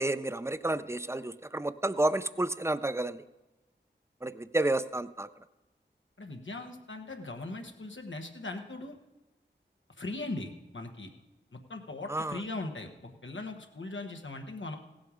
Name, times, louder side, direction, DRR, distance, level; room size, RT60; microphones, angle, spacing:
voice 1, 0.0-3.2 4.2-5.3 12.1-12.4, right 2 dB, 15° right, 13 dB, 0.5 m, -30 dB
voice 2, 6.2-9.0 10.0-11.1 11.5-14.8, left 2 dB, 90° left, 3 dB, 1.2 m, -39 dB
16.5 x 7.9 x 5.0 m, 1.0 s
wide cardioid pair, 40°, 19 cm